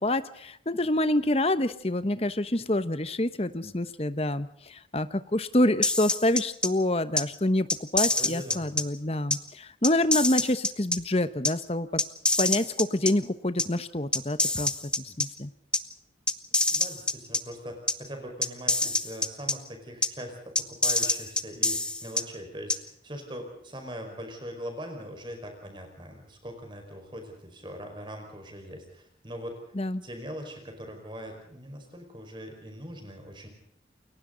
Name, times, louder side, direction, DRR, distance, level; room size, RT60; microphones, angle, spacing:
voice 1, 0.0-12.0 12.4-14.7 15.0-15.5 29.7-30.0, left 1 dB, 35° left, 12 dB, 1.0 m, -27 dB
sound 1, 5.8-6.7 7.2-7.3 7.7-8.8 9.3-9.4 9.8-11.0 11.4-11.5 12.0-13.1 13.6-13.7 14.1-15.3 15.7-15.8 16.3-17.4 17.9-18.0 18.4-19.5 20.0-20.1 20.5-22.2 22.7-22.8, left 2 dB, 5° left, 1.0 m, -25 dB
voice 2, 8.2-8.7 16.7-29.6 30.0-33.5, equal, 25° right, 4 dB, 5.1 m, -41 dB
29.0 x 22.5 x 3.9 m, 0.70 s
head